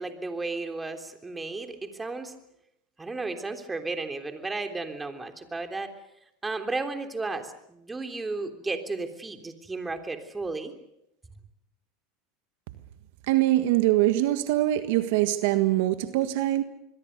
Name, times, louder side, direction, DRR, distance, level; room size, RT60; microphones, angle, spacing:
voice 1, 0.0-2.3 3.0-5.9 6.4-10.7, right 3 dB, 15° right, 6 dB, 3.4 m, -34 dB
voice 2, 13.3-16.6, right 15 dB, 70° right, 10 dB, 1.5 m, -23 dB
26.5 x 22.0 x 6.8 m, 0.81 s
hypercardioid pair, 95°, 0 cm